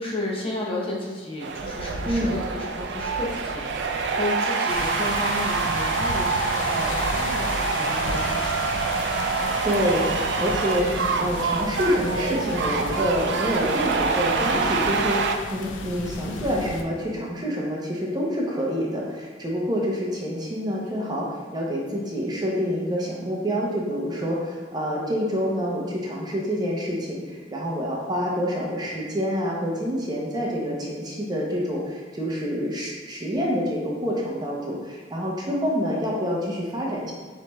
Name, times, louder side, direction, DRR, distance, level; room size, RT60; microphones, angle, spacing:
voice 1, 0.0-8.6 9.9-10.2, left 1 dB, 30° left, -4 dB, 0.8 m, -33 dB
sound 1, 1.4-15.4, right 4 dB, 65° right, 0.4 m, -26 dB
voice 2, 2.0-2.4 9.6-10.0 10.4-37.1, equal, 20° right, -3 dB, 0.7 m, -27 dB
sound 2, 4.7-16.8, left 3 dB, 80° left, 0.4 m, -33 dB
6.9 x 3.1 x 2.3 m, 1.5 s
head